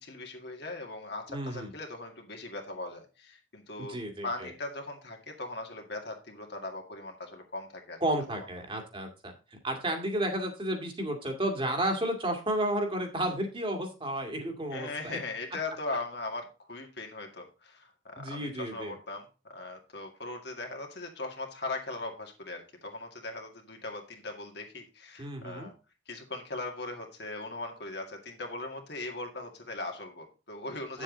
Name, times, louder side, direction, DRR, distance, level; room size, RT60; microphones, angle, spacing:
voice 1, 0.0-4.0 4.2-8.0 8.3-8.5 14.7-25.7 26.1-31.0, left 2 dB, 60° left, 3 dB, 2.1 m, -39 dB
voice 2, 1.3-1.7 3.8-4.5 8.0-9.3 9.6-15.2 18.2-18.9 25.2-25.7 30.9-31.0, right 1 dB, 30° right, 4 dB, 2.0 m, -32 dB
9.0 x 7.3 x 3.9 m, 0.31 s
head